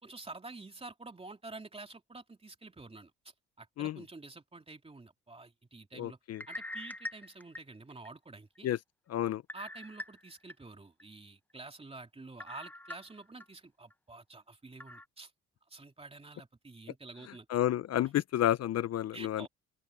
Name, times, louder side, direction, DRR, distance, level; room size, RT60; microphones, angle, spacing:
voice 1, 0.0-3.1 3.6-6.2 6.5-8.7 9.5-15.3 15.7-17.5 19.1-19.5, right 3 dB, 20° right, 3.1 m, -49 dB
voice 2, 6.0-6.4 8.6-8.8 9.1-9.4 17.5-19.5, left 12 dB, 55° left, 0.6 m, -30 dB
sound 1, 6.3-8.1 8.6-8.7 9.5-10.5 11.0-11.1 12.4-13.5 13.9-14.0 14.8-15.1, left 1 dB, 5° left, 0.7 m, -44 dB
open air
cardioid pair, 90°, 30 cm